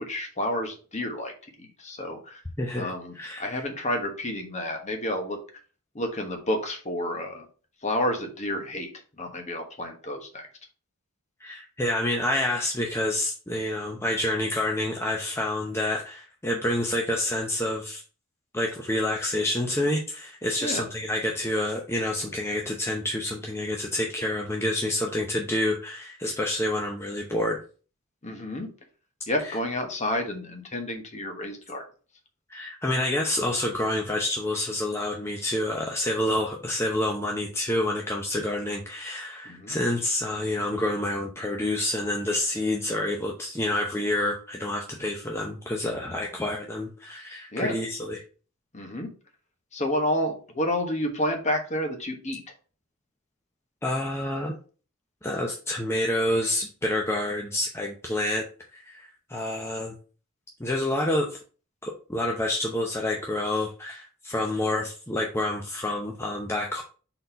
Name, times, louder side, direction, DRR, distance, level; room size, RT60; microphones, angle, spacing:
voice 1, 0.1-1.3 1.6-2.4 2.8-5.4 5.9-7.4 7.8-8.9 9.2-10.5 20.6-20.8 28.2-28.7 29.3-31.8 39.4-39.8 47.5-47.8 48.7-49.1 49.7-52.4, left 1 dB, 35° left, 3 dB, 1.2 m, -30 dB
voice 2, 2.6-3.6 11.4-18.0 18.5-27.6 29.4-29.6 32.5-48.2 53.8-54.5 55.2-58.4 58.7-59.9 60.6-61.4 61.8-66.8, left 1 dB, 10° left, 0 dB, 0.6 m, -28 dB
4.3 x 4.0 x 5.5 m, 0.38 s
head